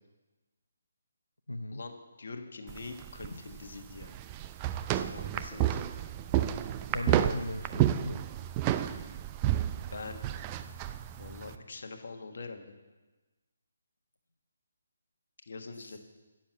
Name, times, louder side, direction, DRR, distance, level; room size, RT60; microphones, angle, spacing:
voice 1, 1.5-1.8 6.9-8.2 15.8-16.0, left 1 dB, 90° left, 6 dB, 0.6 m, -37 dB
voice 2, 2.2-4.1 4.9-5.8 9.9-10.2 11.2-12.8 15.5-16.0, left 4 dB, 65° left, 5 dB, 1.5 m, -43 dB
sound 1, 2.7-11.6, right 12 dB, 25° right, 0.5 m, -31 dB
10.0 x 7.5 x 7.9 m, 1.2 s
figure-of-eight pair, 150°, 0 cm